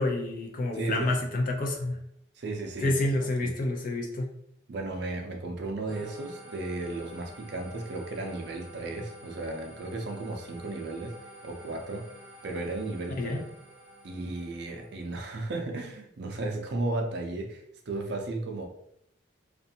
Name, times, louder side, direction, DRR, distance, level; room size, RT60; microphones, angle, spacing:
voice 1, 0.0-2.0 2.8-4.3 13.2-13.4, left 2 dB, 45° left, 1 dB, 0.5 m, -28 dB
voice 2, 0.7-1.1 2.4-3.0 3.4-3.5 4.7-11.1 11.4-12.1 12.4-13.4 14.0-18.7, right 2 dB, 55° right, 3 dB, 0.5 m, -34 dB
sound 1, 5.9-15.2, right 1 dB, 20° right, 0.7 m, -50 dB
2.5 x 2.3 x 2.7 m, 0.74 s
head